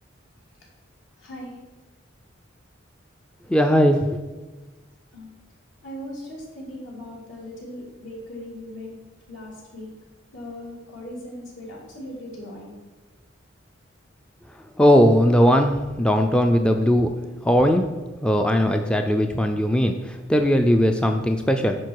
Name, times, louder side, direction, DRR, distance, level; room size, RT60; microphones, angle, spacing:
voice 1, 1.2-1.5 5.1-5.3 5.8-9.0 9.3-9.9 10.3-12.7, left 1 dB, 70° left, -3 dB, 3.0 m, -38 dB
voice 2, 3.5-4.1 14.8-17.1 17.4-17.9 18.2-21.8, equal, 5° left, 5 dB, 0.3 m, -19 dB
10.5 x 5.1 x 4.6 m, 1.3 s
head